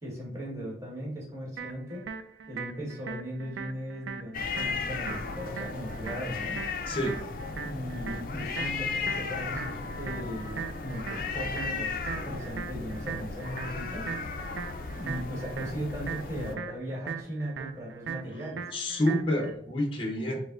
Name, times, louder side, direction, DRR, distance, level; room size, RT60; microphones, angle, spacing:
voice 1, 0.0-2.1 2.5-6.6 7.6-14.1 14.9-18.6, equal, 15° right, -4 dB, 1.3 m, -38 dB
sound 1, 1.6-19.5, right 6 dB, 90° right, 0.4 m, -40 dB
sound 2, 4.3-16.5, left 4 dB, 50° left, 0.4 m, -35 dB
voice 2, 6.9-7.2 18.7-20.4, left 1 dB, 30° left, 1 dB, 0.8 m, -28 dB
5.1 x 2.1 x 3.7 m, 0.66 s
head